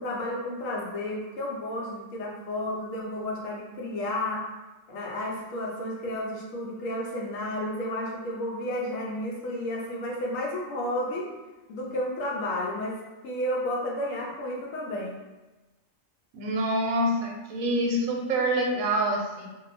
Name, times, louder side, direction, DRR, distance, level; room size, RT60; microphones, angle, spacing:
voice 1, 0.0-4.5 4.9-11.3 11.7-13.0 13.2-15.2, left 1 dB, 75° left, -3 dB, 1.0 m, -32 dB
voice 2, 16.3-19.5, right 1 dB, 90° right, 0 dB, 1.0 m, -26 dB
2.7 x 2.3 x 2.5 m, 1.1 s
omnidirectional pair, 1.4 m